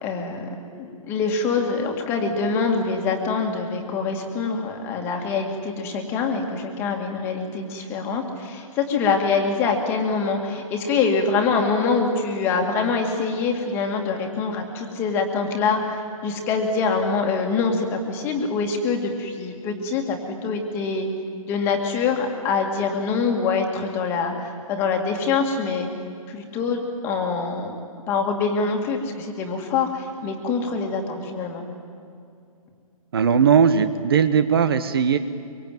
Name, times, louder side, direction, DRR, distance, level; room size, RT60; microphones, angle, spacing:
voice 1, 0.0-21.1 21.5-24.3 24.7-25.9 26.3-27.8 28.1-31.6, left 4 dB, 15° left, 3 dB, 2.1 m, -24 dB
voice 2, 33.1-35.2, right 7 dB, 40° right, 11 dB, 1.1 m, -18 dB
25.0 x 24.0 x 9.2 m, 2.5 s
hypercardioid pair, 175°, 19 cm